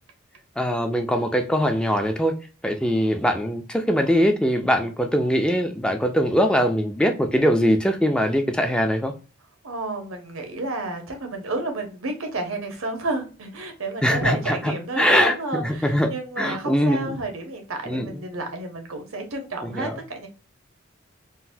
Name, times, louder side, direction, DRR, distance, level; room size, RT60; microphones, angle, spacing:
voice 1, 0.6-2.3 2.6-9.1 14.0-16.1 16.4-17.2 17.9-18.2 19.6-20.0, equal, 5° left, 0.3 m, -22 dB
voice 2, 9.6-20.3, right 2 dB, 90° right, 0.9 m, -31 dB
3.8 x 2.1 x 2.6 m
head